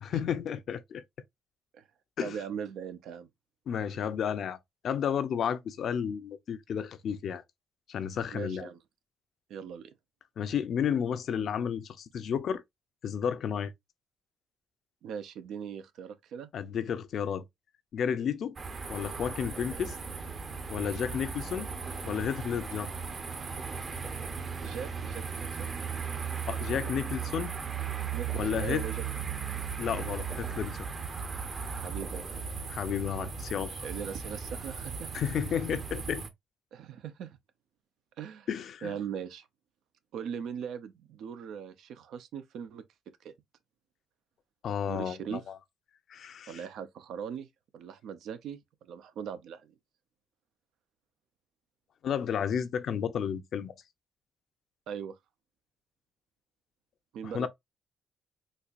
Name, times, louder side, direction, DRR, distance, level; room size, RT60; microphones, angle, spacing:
voice 1, 0.0-1.0 2.2-2.4 3.7-4.6 4.8-7.4 7.9-8.7 10.4-12.6 13.0-13.7 16.5-17.4 17.9-18.6 18.9-20.0 20.7-21.7 22.1-22.9 26.5-27.5 28.3-28.9 29.8-30.8 32.7-33.9 35.1-36.2 38.5-39.0 44.6-45.5 46.1-46.6 52.0-53.7 57.3-57.5, left 8 dB, 65° left, 0.5 m, -32 dB
voice 2, 2.2-3.3 8.3-8.8 9.5-9.9 15.0-16.5 24.6-25.7 28.1-29.0 31.7-32.4 33.8-35.1 36.7-37.4 38.2-38.5 38.8-39.5 40.1-42.8 43.2-43.3 44.9-45.4 46.5-47.5 47.7-49.7 54.9-55.2 57.1-57.5, right 7 dB, 80° right, 0.6 m, -40 dB
sound 1, 18.6-36.3, right 6 dB, 40° right, 0.8 m, -37 dB
4.2 x 2.5 x 2.4 m
cardioid pair, 90°, 0 cm